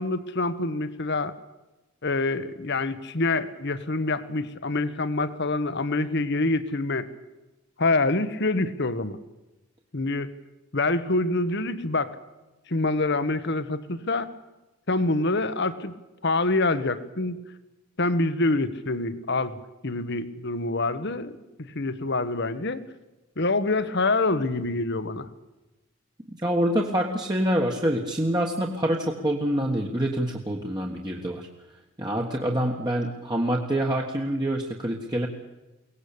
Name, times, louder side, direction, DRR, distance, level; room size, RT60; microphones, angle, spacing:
voice 1, 0.0-1.3 2.0-7.1 7.8-9.2 9.9-10.3 10.7-12.2 12.7-14.3 14.9-15.9 16.2-17.4 18.0-19.6 19.8-22.8 23.4-25.3, left 2 dB, 55° left, 13 dB, 1.3 m, -26 dB
voice 2, 26.4-31.5 32.0-35.3, right 1 dB, 20° right, 0 dB, 1.6 m, -26 dB
23.0 x 18.5 x 8.6 m, 1.0 s
head